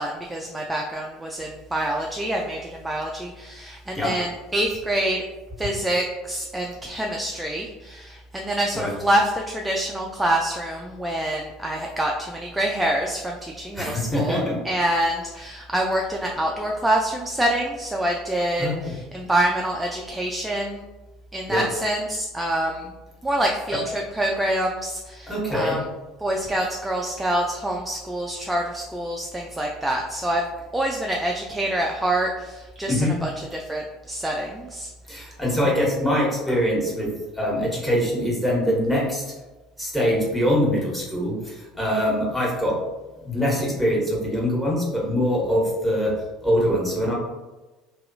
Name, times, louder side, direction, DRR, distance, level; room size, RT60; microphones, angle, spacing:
voice 1, 0.0-5.2 5.6-20.8 21.3-22.9 23.2-25.8 26.2-30.4 30.7-34.9, right 1 dB, 10° right, 0 dB, 0.3 m, -26 dB
voice 2, 13.7-14.6 18.6-18.9 21.5-21.7 23.7-23.8 25.3-25.8 32.9-33.1 35.1-37.1 37.3-39.2 39.8-42.7 43.2-46.1 46.4-47.2, equal, 10° left, -5 dB, 1.1 m, -23 dB
2.7 x 2.3 x 2.6 m, 1.1 s
figure-of-eight pair, 65°, 0 cm